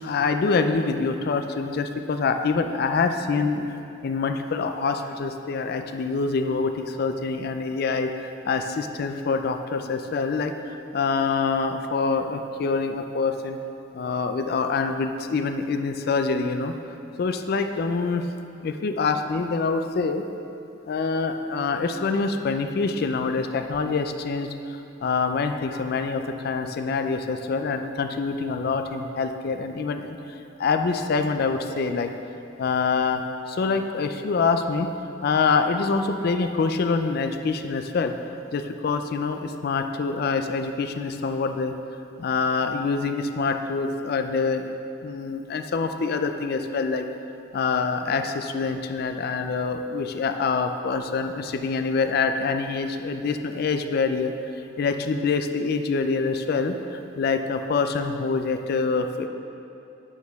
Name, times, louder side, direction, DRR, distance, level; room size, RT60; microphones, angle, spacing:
voice 1, 0.0-3.8 4.0-13.6 13.9-16.7 17.2-18.2 18.6-20.2 20.9-24.5 25.0-30.2 30.6-32.1 32.6-33.2 33.5-34.9 35.2-38.1 38.5-41.7 42.2-44.7 45.0-47.0 47.5-54.3 54.8-59.3, left 4 dB, 55° left, 7 dB, 0.4 m, -25 dB
8.9 x 6.3 x 3.5 m, 2.7 s
head